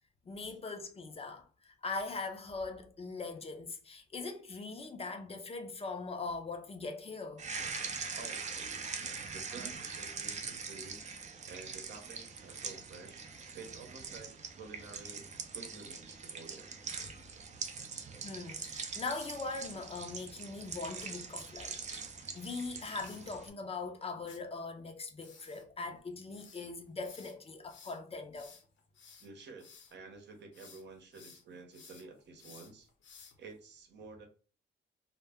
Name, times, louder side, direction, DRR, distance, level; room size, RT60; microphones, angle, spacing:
voice 1, 0.3-7.4 18.2-22.1 22.3-28.5, left 3 dB, 30° left, 0.5 m, -41 dB
sound 1, 7.4-23.5, right 5 dB, 35° right, 0.5 m, -43 dB
voice 2, 8.2-11.0 11.5-13.2 13.5-16.8 29.2-32.9 33.4-34.3, right 4 dB, 60° right, 0.8 m, -51 dB
sound 2, 22.5-23.3 24.3-24.4 25.2-30.0 30.3-30.9 31.1-33.5, left 6 dB, 70° left, 0.8 m, -57 dB
2.1 x 2.1 x 3.4 m
cardioid pair, 90°, 20 cm